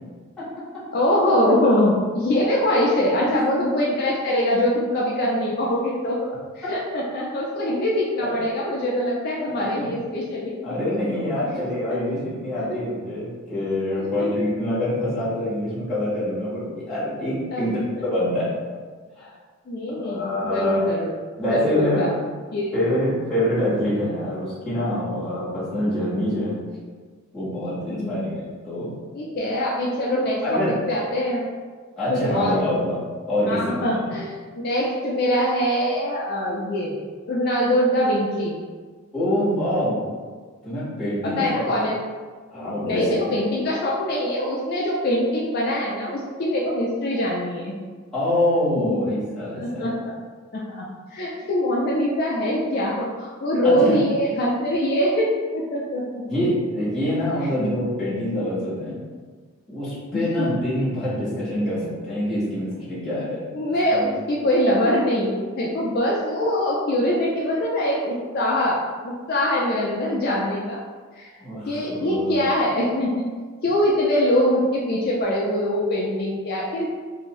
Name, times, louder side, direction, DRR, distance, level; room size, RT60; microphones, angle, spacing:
voice 1, 0.9-6.2 6.6-10.5 12.7-12.8 14.0-14.5 17.5-17.6 19.7-21.1 21.5-22.1 22.5-22.7 27.9-28.3 29.1-31.4 32.1-32.5 33.5-34.3 34.6-36.9 37.3-38.5 41.4-42.0 42.8-47.7 48.9-49.0 49.5-50.2 50.5-50.9 51.1-56.2 60.1-60.6 63.5-68.8 69.0-70.8 71.1-71.3 71.7-73.3 73.6-76.9, left 1 dB, 45° left, -4 dB, 0.4 m, -23 dB
voice 2, 3.0-3.4 8.2-8.4 9.4-9.9 10.6-18.6 19.2-19.3 20.0-20.9 21.4-22.1 22.7-26.5 27.3-28.9 30.4-30.7 32.0-33.0 33.3-34.1 39.1-40.0 40.6-41.6 42.5-43.3 48.1-49.9 53.6-53.9 56.3-59.0 59.7-63.4 63.9-64.0 71.4-72.4, left 1 dB, 5° left, -13 dB, 1.4 m, -25 dB
2.7 x 2.6 x 3.0 m, 1.5 s
head